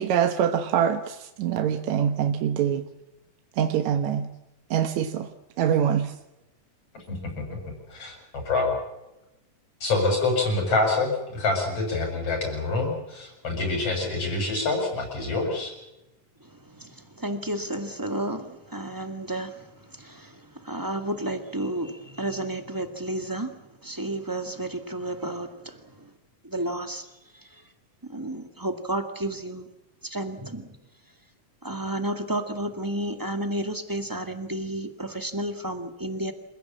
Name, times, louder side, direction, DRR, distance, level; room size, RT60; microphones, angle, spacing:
voice 1, 0.0-2.8 3.6-4.2 4.7-5.3 5.6-6.1, right 9 dB, 65° right, 7 dB, 2.2 m, -24 dB
voice 2, 7.9-8.7 9.8-15.7, left 3 dB, 45° left, 3 dB, 8.4 m, -26 dB
voice 3, 16.7-19.7 19.9-23.5 23.8-25.8 26.4-27.1 28.1-29.6 30.0-30.7 31.6-36.3, right 1 dB, 10° right, 6 dB, 1.0 m, -31 dB
28.0 x 16.5 x 8.7 m, 0.94 s
omnidirectional pair, 3.8 m